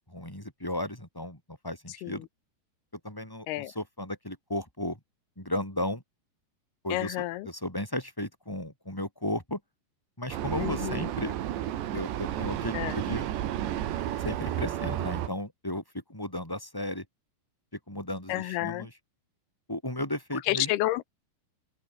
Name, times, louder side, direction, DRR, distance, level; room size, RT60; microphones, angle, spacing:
voice 1, 0.0-2.3 3.0-5.0 5.4-6.0 6.8-7.2 7.4-9.6 10.2-11.4 11.9-13.3 14.2-15.8 16.1-17.0 17.9-18.9 19.7-20.7, left 1 dB, 5° left, 7.6 m, -35 dB
voice 2, 6.9-7.5 10.6-11.1 12.7-13.0 18.3-18.9 20.5-21.1, left 17 dB, 75° left, 2.6 m, -30 dB
Vehicle, 10.3-15.3, right 12 dB, 80° right, 4.1 m, -32 dB
open air
omnidirectional pair, 5.0 m